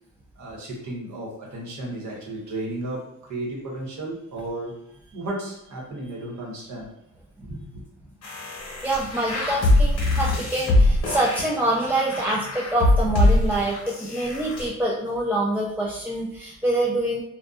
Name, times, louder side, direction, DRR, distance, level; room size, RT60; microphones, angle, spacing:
voice 1, 0.4-4.8 5.1-6.9 7.4-7.8, right 1 dB, 70° right, -2 dB, 1.0 m, -34 dB
sound 1, 8.2-14.7, left 1 dB, 55° left, 0.9 m, -22 dB
voice 2, 8.8-17.2, right 1 dB, 5° right, -5 dB, 0.3 m, -25 dB
2.6 x 2.2 x 2.3 m, 0.83 s
cardioid pair, 90°, 30 cm